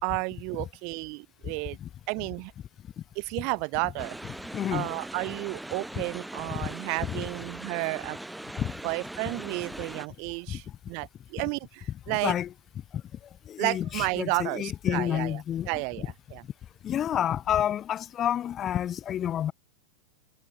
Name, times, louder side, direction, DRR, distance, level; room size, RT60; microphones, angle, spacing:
voice 1, 0.0-1.8 2.1-2.5 3.1-4.2 4.7-8.2 8.8-12.3 13.6-15.4 15.7-16.4, right 36 dB, 45° right, 1.6 m, -32 dB
sound 1, 4.0-10.1, right 1 dB, 5° right, 5.2 m, -40 dB
voice 2, 4.5-4.9 6.5-6.7 7.1-7.2 8.6-8.7 10.5-10.6 12.1-12.5 13.5-15.7 16.0-16.1 16.8-19.5, left 10 dB, 30° left, 0.6 m, -29 dB
figure-of-eight pair, 90°, 0 cm